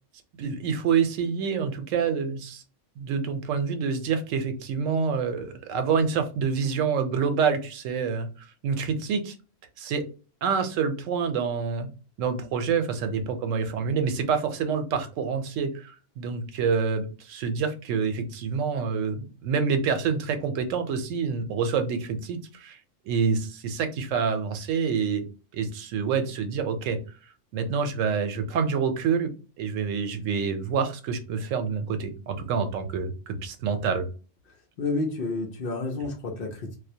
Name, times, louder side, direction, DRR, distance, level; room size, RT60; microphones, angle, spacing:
voice 1, 0.4-2.6 3.0-9.3 9.8-10.0 10.4-11.9 12.2-22.8 23.1-25.3 25.5-27.0 27.5-34.1, right 6 dB, 90° right, 8 dB, 0.9 m, -27 dB
voice 2, 34.5-36.8, left 3 dB, 60° left, 1 dB, 0.7 m, -30 dB
2.3 x 2.1 x 2.6 m, 0.35 s
omnidirectional pair, 1.3 m